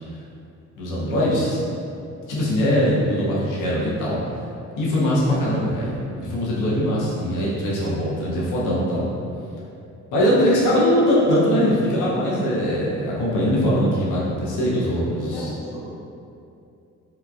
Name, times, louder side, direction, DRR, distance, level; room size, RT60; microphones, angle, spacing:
voice 1, 0.8-1.6 2.3-4.2 4.8-9.1 10.1-15.5, equal, 90° left, -6 dB, 0.7 m, -21 dB
voice 2, 14.9-15.8, left 1 dB, 45° left, -7 dB, 0.8 m, -36 dB
2.9 x 2.3 x 2.4 m, 2.6 s
cardioid pair, 90°, 30 cm